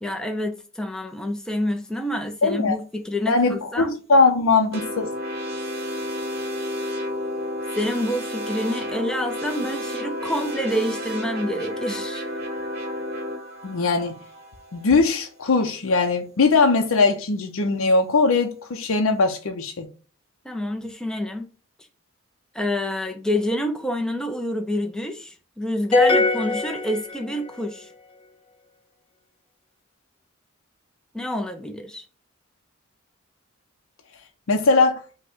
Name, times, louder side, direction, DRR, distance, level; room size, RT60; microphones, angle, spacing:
voice 1, 0.0-4.0 7.7-12.2 20.4-21.5 22.5-27.9 31.1-32.0, equal, 5° left, 0.4 m, -27 dB
voice 2, 2.4-2.8 3.3-5.1 13.6-14.1 14.7-19.9 34.5-35.0, left 3 dB, 75° left, 0.6 m, -20 dB
sound 1, 4.7-15.2, left 1 dB, 45° right, 0.8 m, -31 dB
sound 2, 25.9-27.6, left 3 dB, 25° left, 0.9 m, -21 dB
5.1 x 2.2 x 3.6 m
head